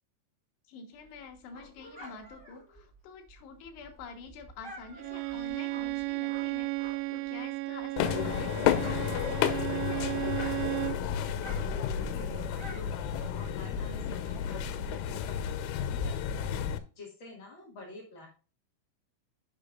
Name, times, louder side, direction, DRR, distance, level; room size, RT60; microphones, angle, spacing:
voice 1, 0.7-8.5 8.8-10.2, left 5 dB, 70° left, 4 dB, 3.1 m, -47 dB
Dog, 1.0-7.3 7.6-9.9 10.2-13.6, equal, 15° right, 2.5 m, -50 dB
Bowed string instrument, 5.0-11.1, right 21 dB, 85° right, 2.7 m, -34 dB
sound 1, 8.0-16.8, left 9 dB, 85° left, 3.3 m, -31 dB
voice 2, 10.8-18.3, left 2 dB, 50° left, -2 dB, 1.5 m, -49 dB
10.0 x 7.2 x 2.5 m, 0.35 s
omnidirectional pair, 5.5 m